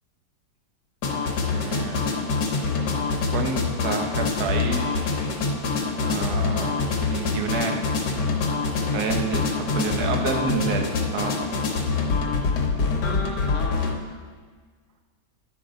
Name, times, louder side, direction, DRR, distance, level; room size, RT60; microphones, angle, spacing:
sound 1, 1.0-13.9, left 4 dB, 75° left, 1.6 m, -25 dB
voice 1, 1.5-2.1 2.6-3.0 3.3-5.4 6.0-8.4 8.9-11.5 11.8-11.9, right 5 dB, 65° right, 3 dB, 1.4 m, -30 dB
10.5 x 5.8 x 3.8 m, 1.5 s
omnidirectional pair, 1.9 m